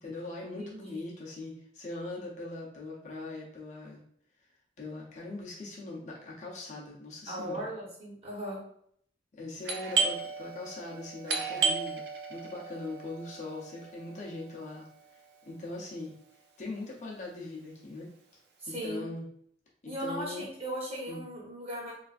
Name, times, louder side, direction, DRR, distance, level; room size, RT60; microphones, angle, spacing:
voice 1, 0.0-4.0 4.8-7.7 9.3-12.0 12.3-14.9 15.5-16.1 16.6-18.1 18.7-19.3 20.0-20.4 21.1-21.2, left 2 dB, 40° left, -3 dB, 0.6 m, -41 dB
voice 2, 0.6-1.1 7.3-8.6 18.6-19.1 19.8-21.9, equal, 30° right, -6 dB, 1.1 m, -38 dB
Doorbell, 9.6-15.1, right 4 dB, 70° right, 0.4 m, -34 dB
3.3 x 2.4 x 2.4 m, 0.67 s
head